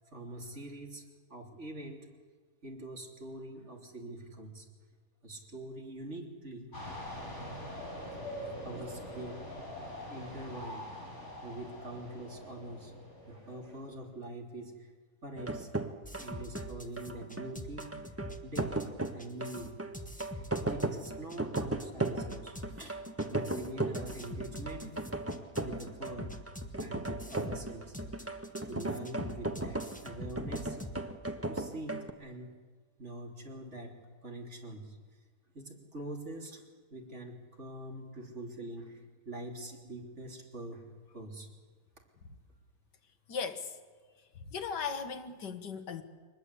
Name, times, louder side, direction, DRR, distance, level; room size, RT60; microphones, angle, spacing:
voice 1, 0.0-2.1 2.6-4.7 5.2-6.7 8.3-9.5 10.0-10.9 11.4-12.9 13.2-14.9 15.2-15.7 16.2-17.9 18.4-18.8 19.1-19.8 20.3-23.0 23.3-24.9 25.2-26.4 26.8-28.0 28.6-30.8 31.5-32.6 33.0-35.0 35.5-41.5, right 1 dB, 40° right, 3.5 m, -44 dB
sound 1, 6.7-14.1, left 1 dB, 40° left, 6.0 m, -44 dB
sound 2, 15.4-32.1, right 2 dB, 10° right, 1.0 m, -36 dB
sound 3, 16.0-31.0, left 1 dB, 5° left, 1.3 m, -45 dB
voice 2, 43.3-43.8 44.4-46.0, left 6 dB, 85° left, 2.1 m, -37 dB
23.5 x 20.0 x 8.3 m
omnidirectional pair, 1.8 m